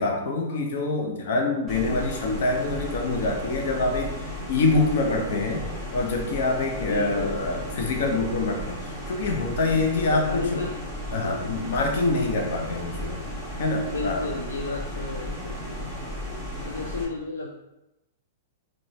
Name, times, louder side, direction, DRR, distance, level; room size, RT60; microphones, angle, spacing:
voice 1, 0.0-10.6 11.1-13.2 13.6-14.2, left 2 dB, 65° left, 2 dB, 0.8 m, -26 dB
sound 1, 1.7-17.1, equal, 15° left, 1.2 m, -35 dB
voice 2, 1.8-2.4 6.8-7.4 10.1-10.7 11.1-11.7 13.9-16.2 16.6-17.6, left 3 dB, 90° left, 0 dB, 0.3 m, -33 dB
3.9 x 2.5 x 3.1 m, 0.92 s
hypercardioid pair, 110°, 0 cm